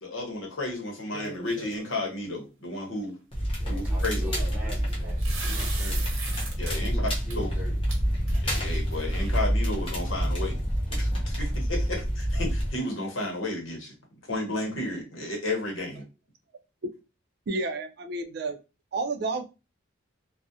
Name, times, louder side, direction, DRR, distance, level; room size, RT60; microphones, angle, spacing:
voice 1, 0.0-3.2 3.7-4.3 6.6-7.5 8.4-10.6 10.9-13.9 14.3-16.1, left 2 dB, 80° left, 0.9 m, -33 dB
sound 1, 1.1-1.9 3.9-6.7 7.1-7.4 7.9-8.0 8.3-9.5, right 3 dB, 90° right, 0.7 m, -39 dB
Crackle, 3.3-12.7, equal, 30° left, 0.7 m, -27 dB
voice 2, 3.6-6.1 6.7-7.8, equal, 10° right, 0.8 m, -42 dB
voice 3, 17.5-18.6 18.9-19.5, right 3 dB, 55° right, 0.4 m, -30 dB
2.4 x 2.1 x 2.6 m
head